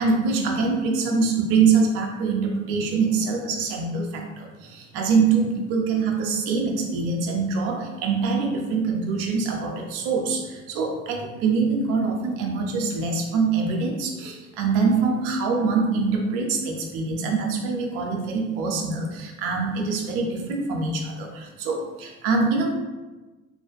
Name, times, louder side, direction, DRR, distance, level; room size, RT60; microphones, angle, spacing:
voice 1, 0.0-22.7, right 4 dB, 45° right, 1 dB, 0.5 m, -24 dB
2.5 x 2.1 x 2.5 m, 1.2 s
figure-of-eight pair, 65°, 35 cm